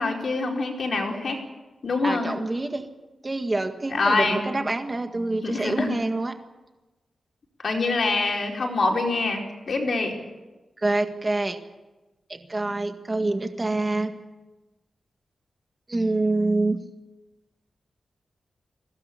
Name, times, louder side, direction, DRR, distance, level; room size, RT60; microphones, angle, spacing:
voice 1, 0.0-1.4 1.8-2.3 3.9-4.4 5.4-5.9 7.6-10.1, left 3 dB, 55° left, 1 dB, 4.5 m, -25 dB
voice 2, 2.0-2.9 3.2-6.3 10.8-11.6 12.3-14.2 15.9-16.8, right 2 dB, 25° right, 6 dB, 1.7 m, -26 dB
23.0 x 17.5 x 8.5 m, 1.1 s
wide cardioid pair, 155°, 0 cm